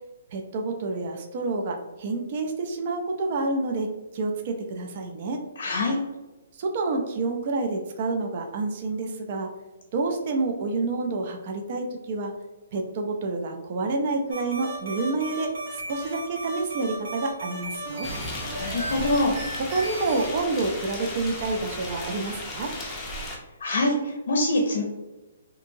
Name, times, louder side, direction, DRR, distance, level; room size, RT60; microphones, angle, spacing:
voice 1, 0.3-3.9 4.1-5.4 6.5-9.5 9.9-12.3 12.7-18.1 19.6-22.7, right 3 dB, 45° right, 3 dB, 0.4 m, -28 dB
voice 2, 5.6-6.0 18.6-19.3 23.6-24.8, left 1 dB, 70° left, 1 dB, 0.5 m, -24 dB
sound 1, 14.3-20.4, right 1 dB, 80° right, 1.0 m, -35 dB
sound 2, 18.0-23.4, left 1 dB, 10° left, 0.5 m, -35 dB
2.7 x 2.6 x 2.6 m, 1.1 s
hypercardioid pair, 155°, 0 cm